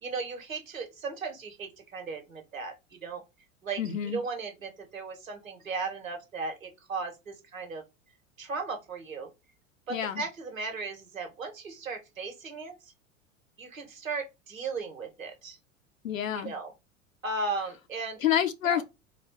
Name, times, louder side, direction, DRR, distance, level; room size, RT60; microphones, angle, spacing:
voice 1, 0.0-3.2 3.6-3.8 4.1-7.8 8.4-9.3 9.9-12.9 13.6-15.6 16.3-16.7 17.2-18.2 18.6-18.8, right 4 dB, 85° right, 1.7 m, -36 dB
voice 2, 3.8-4.2 9.9-10.2 16.0-16.5 18.2-18.8, left 10 dB, 80° left, 0.8 m, -28 dB
4.1 x 2.5 x 4.3 m
figure-of-eight pair, 85°, 39 cm